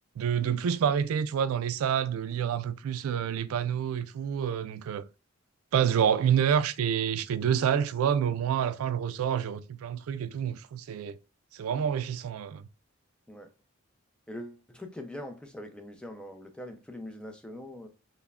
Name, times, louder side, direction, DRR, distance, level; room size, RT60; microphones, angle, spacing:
voice 1, 0.2-5.0 5.7-11.2 11.5-12.6, right 8 dB, 90° right, 0.3 m, -28 dB
voice 2, 14.3-17.9, left 1 dB, 5° left, 0.4 m, -42 dB
5.5 x 2.1 x 2.3 m
head